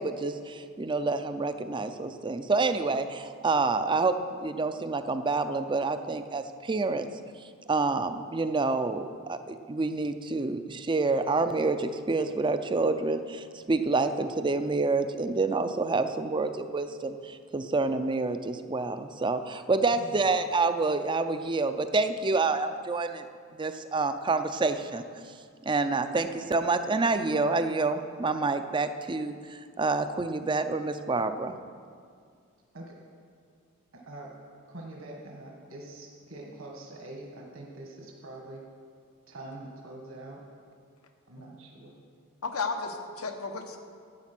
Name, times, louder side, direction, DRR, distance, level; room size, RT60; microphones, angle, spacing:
voice 1, 0.0-7.1 7.7-23.2 23.5-25.0 25.6-31.5, right 3 dB, 20° right, 10 dB, 0.4 m, -28 dB
voice 2, 33.9-34.3 34.7-38.6 39.3-40.4 41.3-41.9, right 2 dB, 65° right, -1 dB, 1.6 m, -44 dB
voice 3, 42.4-43.8, left 4 dB, 90° left, 5 dB, 1.1 m, -33 dB
11.5 x 8.9 x 6.0 m, 2.2 s
head